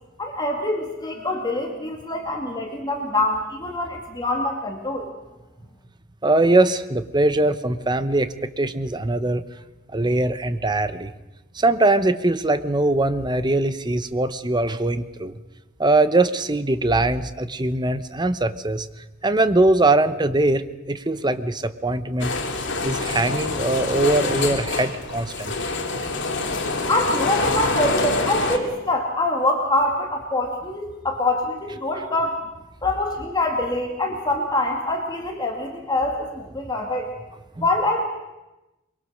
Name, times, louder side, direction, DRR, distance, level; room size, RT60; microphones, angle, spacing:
voice 1, 0.2-5.1 26.9-32.4 32.8-37.1 37.6-38.1, left 2 dB, 20° left, 1 dB, 2.2 m, -24 dB
voice 2, 6.2-9.4 9.9-11.1 11.5-15.4 15.8-18.9 19.2-25.7 37.6-37.7, right 2 dB, 20° right, 11 dB, 1.0 m, -21 dB
sound 1, 22.2-28.6, left 3 dB, 60° left, 2.6 m, -26 dB
23.5 x 23.5 x 6.5 m, 1.0 s
head